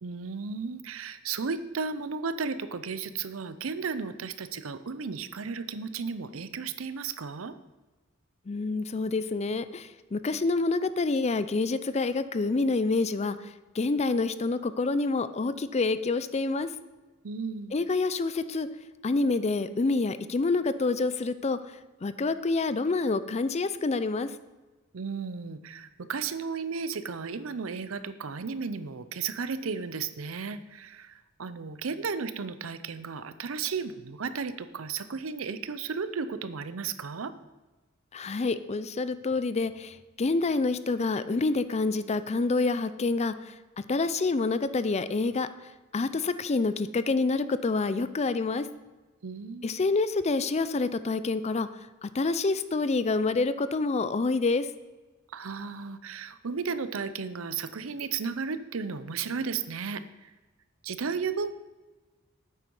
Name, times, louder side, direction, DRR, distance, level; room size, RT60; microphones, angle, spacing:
voice 1, 0.0-7.6 17.2-17.8 24.9-37.3 49.2-49.8 55.3-60.3 60.8-61.5, right 5 dB, 80° right, 13 dB, 0.6 m, -34 dB
voice 2, 8.5-16.7 17.7-18.7 19.0-21.6 22.0-24.3 38.1-43.5 43.9-45.5 45.9-48.7 49.6-51.7 52.0-54.7, left 3 dB, 30° left, 13 dB, 0.5 m, -27 dB
9.1 x 7.7 x 5.4 m, 1.2 s
head